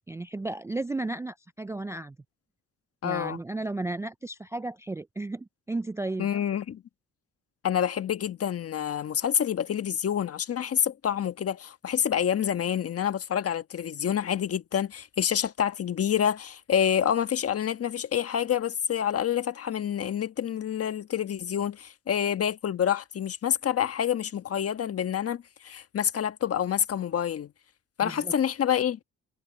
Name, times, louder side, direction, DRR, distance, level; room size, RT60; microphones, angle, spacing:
voice 1, 0.1-2.2 3.0-6.3 28.0-28.3, right 2 dB, 10° right, 0.3 m, -34 dB
voice 2, 3.0-3.4 6.2-6.8 7.6-27.5 28.0-29.0, left 9 dB, 50° left, 1.4 m, -27 dB
cardioid pair, 90°, 30 cm